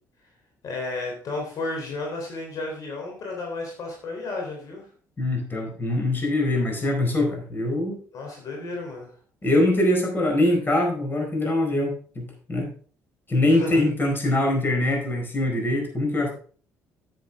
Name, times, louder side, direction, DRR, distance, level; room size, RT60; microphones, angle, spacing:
voice 1, 0.6-4.9 8.1-9.1 13.5-13.8, left 2 dB, 60° left, 0 dB, 3.4 m, -32 dB
voice 2, 5.2-8.0 9.4-12.7 13.3-16.3, left 1 dB, 30° left, 2 dB, 4.5 m, -23 dB
9.5 x 9.0 x 3.5 m, 0.43 s
cardioid pair, 80°, 7 cm